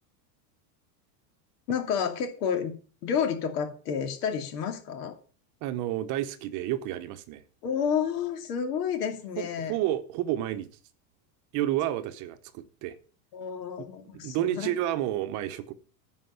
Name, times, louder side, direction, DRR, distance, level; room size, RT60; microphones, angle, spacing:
voice 1, 1.7-2.7 3.0-5.2 7.6-9.8 13.3-14.8, left 7 dB, 70° left, 2.7 m, -30 dB
voice 2, 5.6-7.4 9.4-10.7 11.5-13.0 14.2-15.7, right 13 dB, 40° right, 0.9 m, -30 dB
10.0 x 5.3 x 7.9 m
supercardioid pair, 150°, 48 cm